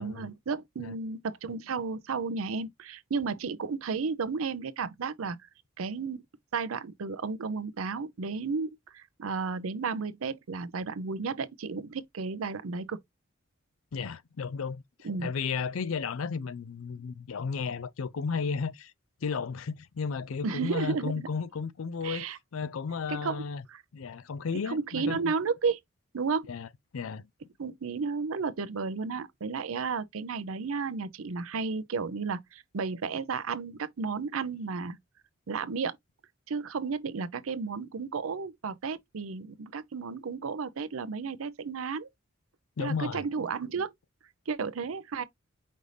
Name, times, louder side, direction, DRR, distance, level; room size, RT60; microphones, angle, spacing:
voice 1, 0.0-5.4 5.8-6.2 6.5-13.0 15.0-15.3 20.4-21.3 22.0-22.4 23.1-23.4 23.7-23.8 24.7-25.8 26.1-26.5 27.6-35.0 35.5-36.0 36.5-42.1 42.8-43.9 44.5-45.2, right 5 dB, 85° right, 0.5 m, -33 dB
voice 2, 13.9-18.9 19.2-23.6 23.9-25.3 26.5-27.3 42.8-43.3, left 5 dB, 85° left, 0.5 m, -34 dB
5.3 x 2.6 x 3.1 m
head